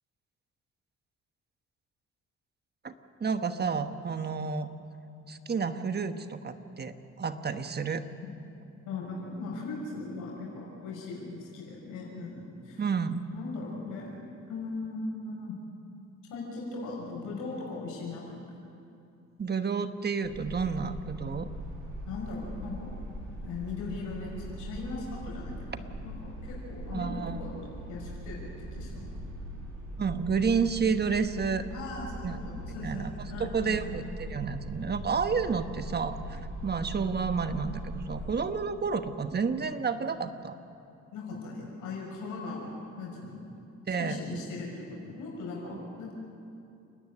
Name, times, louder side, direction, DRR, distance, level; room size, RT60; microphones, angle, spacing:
voice 1, 3.2-4.7 5.3-8.0 12.8-13.2 19.4-21.5 26.9-27.4 30.0-31.6 32.2-32.4 32.7-33.1 33.4-40.6 43.9-44.2, right 5 dB, 35° right, 9 dB, 1.3 m, -30 dB
voice 2, 8.8-12.8 13.3-14.1 14.5-15.5 16.3-18.6 22.1-22.9 23.4-29.1 31.7-33.8 41.1-43.4 43.9-46.1, left 3 dB, 90° left, -3 dB, 6.0 m, -39 dB
sound 1, 20.2-38.3, right 1 dB, 75° right, 6.7 m, -41 dB
29.5 x 10.5 x 9.8 m, 2.6 s
cardioid pair, 90°, 30 cm